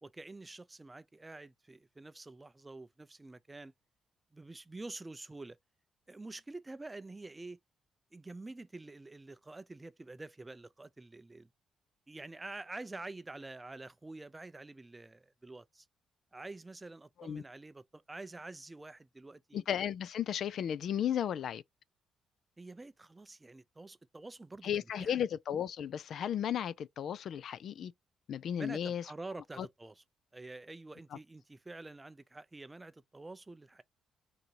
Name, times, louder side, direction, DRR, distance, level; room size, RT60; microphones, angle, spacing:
voice 1, 0.0-3.7 4.3-5.6 6.1-7.6 8.1-11.5 12.1-15.9 16.3-19.6 22.6-24.7 25.0-25.2 28.6-30.0 30.3-33.8, right 2 dB, 20° right, 0.4 m, -47 dB
voice 2, 19.5-21.6 24.6-27.9 28.3-29.0 29.6-29.7, left 9 dB, 65° left, 0.3 m, -34 dB
3.9 x 2.8 x 4.5 m
cardioid pair, 90°, 0 cm